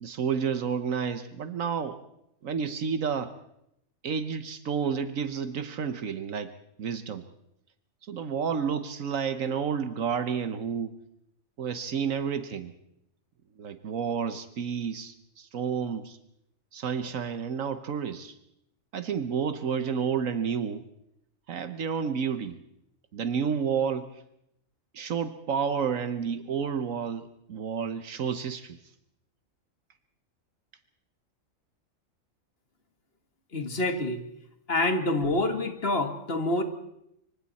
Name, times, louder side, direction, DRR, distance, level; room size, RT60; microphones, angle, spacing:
voice 1, 0.0-2.0 2.4-3.3 4.0-6.5 6.8-7.2 8.0-10.9 11.6-12.7 13.6-16.2 16.7-18.3 18.9-20.8 21.5-22.6 23.1-24.2 24.9-28.8, right 6 dB, 75° right, 10 dB, 1.4 m, -30 dB
voice 2, 33.5-34.2 34.7-36.6, left 2 dB, 45° left, 7 dB, 2.1 m, -27 dB
25.5 x 24.5 x 4.2 m, 0.80 s
omnidirectional pair, 1.4 m